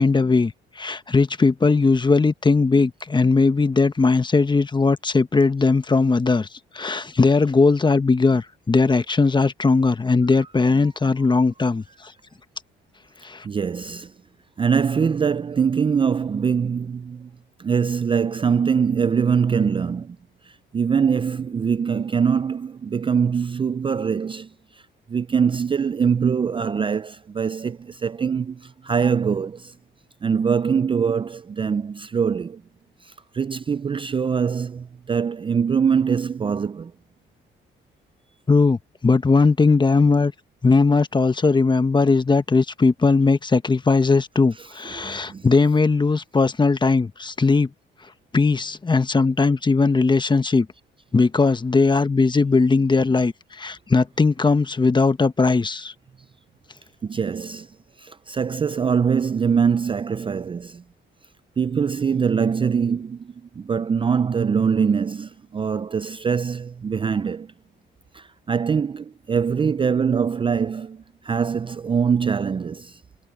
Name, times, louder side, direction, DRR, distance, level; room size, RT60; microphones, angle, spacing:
voice 1, 0.0-6.5 6.7-12.1 13.2-13.4 38.5-40.3 40.6-47.7 48.3-50.7 51.1-55.9, left 4 dB, 25° left, 1.2 m, -19 dB
voice 2, 13.4-14.1 14.6-17.3 17.6-20.2 20.4-24.5 25.1-29.7 30.2-32.6 33.0-36.9 44.5-45.8 57.0-57.7 58.0-60.8 61.6-67.5 68.1-73.0, right 6 dB, 25° right, 0.4 m, -23 dB
cardioid pair, 90°, 20 cm